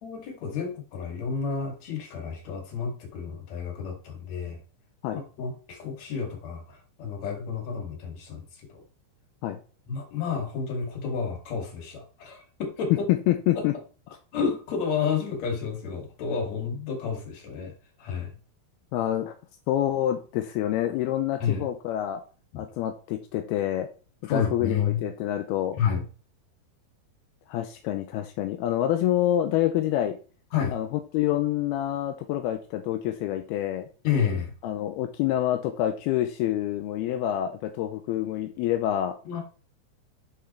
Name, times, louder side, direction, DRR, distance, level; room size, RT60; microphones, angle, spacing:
voice 1, 0.0-4.6 5.1-8.4 8.7-8.8 9.9-13.0 13.6-13.7 14.3-17.7 18.0-18.3 21.4-21.7 22.5-22.6 24.3-25.0 25.8-26.0 30.5-30.7 34.0-34.5 39.3-39.4, left 6 dB, 45° left, 1 dB, 2.7 m, -30 dB
voice 2, 13.1-13.7 18.9-19.3 19.7-22.2 22.6-23.9 24.2-25.8 27.5-30.2 30.7-33.9 34.6-39.1, left 12 dB, 85° left, 7 dB, 2.3 m, -27 dB
8.4 x 6.0 x 4.3 m, 0.36 s
omnidirectional pair, 5.3 m